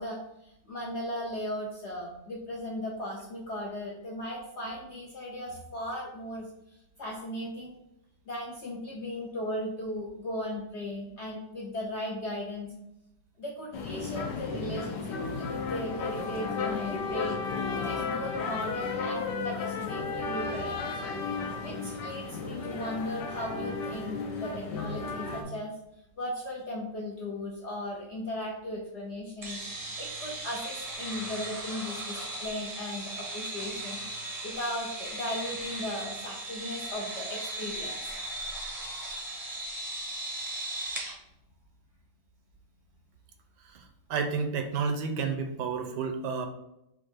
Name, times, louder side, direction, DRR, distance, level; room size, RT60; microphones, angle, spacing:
voice 1, 0.0-7.8 8.3-12.7 13.4-17.4 17.7-21.1 21.6-25.7 26.2-34.0 34.4-38.0, left 1 dB, 60° left, -2 dB, 0.7 m, -37 dB
sound 1, 13.7-25.4, left 4 dB, 80° left, 1.3 m, -34 dB
sound 2, 29.4-41.1, right 2 dB, 35° right, 0.6 m, -37 dB
voice 2, 44.1-46.5, right 5 dB, 80° right, 5 dB, 1.2 m, -30 dB
4.3 x 2.6 x 4.3 m, 0.83 s
omnidirectional pair, 1.9 m